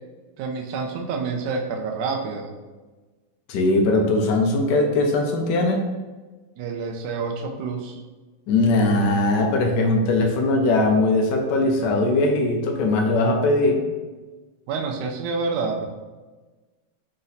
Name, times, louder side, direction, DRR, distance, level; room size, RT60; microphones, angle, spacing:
voice 1, 0.4-2.5 6.6-8.0 14.7-15.8, right 4 dB, 80° right, 2 dB, 0.9 m, -28 dB
voice 2, 3.5-5.9 8.5-13.8, left 2 dB, 80° left, 3 dB, 0.9 m, -20 dB
4.1 x 2.7 x 3.9 m, 1.3 s
omnidirectional pair, 2.4 m